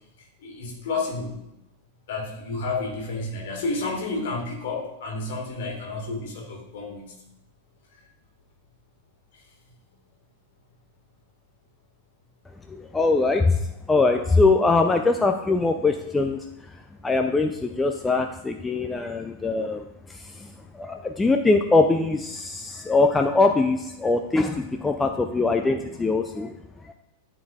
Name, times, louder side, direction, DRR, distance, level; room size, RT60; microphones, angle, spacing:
voice 1, 0.4-1.4 2.1-7.2 9.3-9.4, left 3 dB, 55° left, 0 dB, 1.8 m, -31 dB
voice 2, 12.7-13.6 13.9-16.4 17.0-26.6, left 3 dB, 10° left, 5 dB, 0.4 m, -22 dB
11.5 x 4.0 x 2.4 m, 0.88 s
figure-of-eight pair, 90°, 0 cm